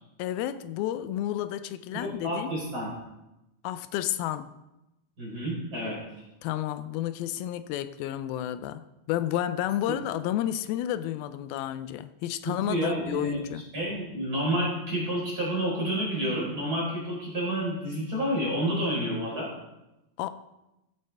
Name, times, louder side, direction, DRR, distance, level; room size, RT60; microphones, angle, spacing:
voice 1, 0.2-2.5 3.6-4.5 6.4-13.6 20.2-20.3, left 12 dB, 90° left, 2.4 m, -31 dB
voice 2, 1.9-2.9 5.2-6.0 9.9-10.0 12.5-13.4 13.7-19.5, equal, 25° right, 4.5 m, -29 dB
14.5 x 9.2 x 3.4 m
omnidirectional pair, 4.2 m